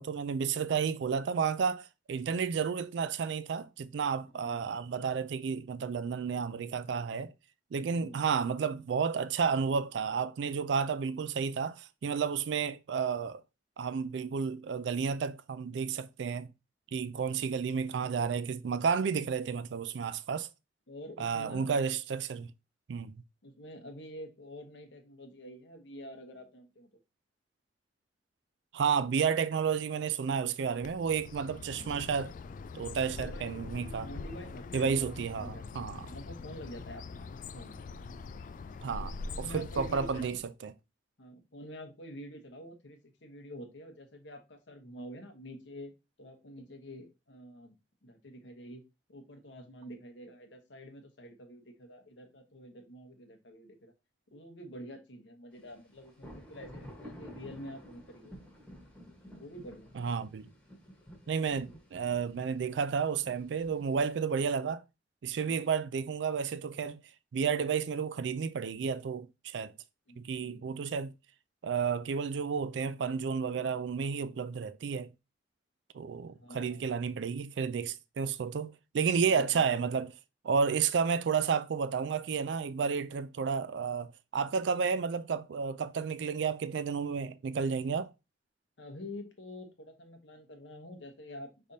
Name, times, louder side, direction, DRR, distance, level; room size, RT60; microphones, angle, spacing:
voice 1, 0.0-7.3 7.7-13.4 13.8-16.5 16.9-20.5 21.2-22.5 22.9-23.1 28.7-32.3 32.7-34.1 34.7-36.1 38.8-40.7 60.0-60.5 61.3-64.8 65.2-67.0 67.3-69.7 70.2-71.1 71.6-75.1 75.9-80.1 80.4-88.1, right 6 dB, 75° right, 0.4 m, -31 dB
voice 2, 7.9-8.2 20.9-21.7 23.4-26.9 33.1-33.6 34.0-37.7 39.3-40.4 41.2-45.9 46.2-48.8 49.1-53.9 54.3-58.4 59.4-60.0 70.1-70.6 76.3-76.8 79.2-79.7 88.8-91.7, equal, 80° left, 1.0 m, -48 dB
Bird, 30.8-40.5, left 4 dB, 45° left, 0.3 m, -43 dB
sound 1, 55.6-64.2, equal, 5° left, 1.2 m, -52 dB
5.1 x 3.3 x 2.7 m
head